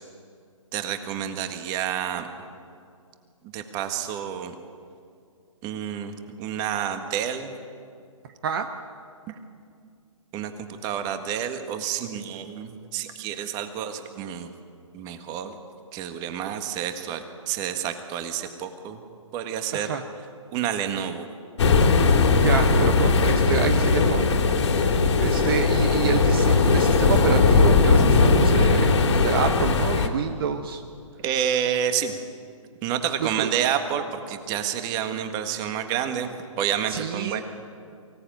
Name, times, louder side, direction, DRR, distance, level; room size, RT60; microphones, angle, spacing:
voice 1, 0.7-2.3 3.5-4.5 5.6-6.1 6.4-7.5 9.3-9.4 10.3-14.5 14.9-15.6 15.9-19.0 19.3-19.9 20.5-21.3 31.2-32.2 32.8-36.3 36.6-37.4, right 9 dB, 25° right, 8 dB, 1.7 m, -29 dB
voice 2, 19.7-20.0 22.4-24.9 25.2-30.8 33.4-33.5 36.9-37.4, right 7 dB, 45° right, 7 dB, 1.1 m, -28 dB
sound 1, 21.6-30.1, left 4 dB, 60° left, 2.7 m, -19 dB
23.5 x 17.0 x 9.2 m, 2.4 s
hypercardioid pair, 150°, 17 cm